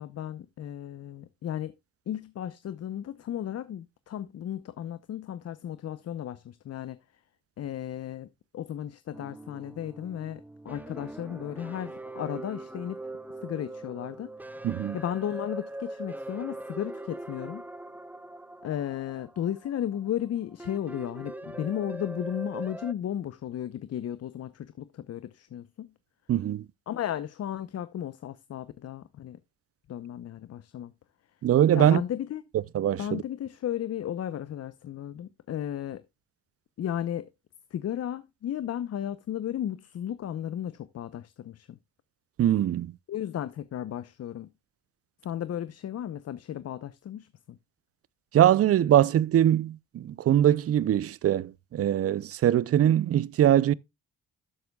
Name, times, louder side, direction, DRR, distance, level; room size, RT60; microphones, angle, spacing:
voice 1, 0.0-1.7 2.1-7.0 7.6-8.3 8.5-13.0 13.4-14.3 14.9-17.6 18.6-25.9 26.9-29.4 29.9-30.9 31.7-32.4 33.0-36.0 36.8-37.3 37.7-41.8 43.1-44.5 45.2-47.6, left 10 dB, 55° left, 0.8 m, -34 dB
sound 1, 9.1-22.9, right 1 dB, 5° right, 0.7 m, -41 dB
voice 2, 14.6-15.0 26.3-26.6 31.4-32.0 32.7-33.2 42.4-42.9 48.3-53.7, right 11 dB, 50° right, 0.6 m, -22 dB
12.0 x 7.8 x 2.3 m
cardioid pair, 90°, 30 cm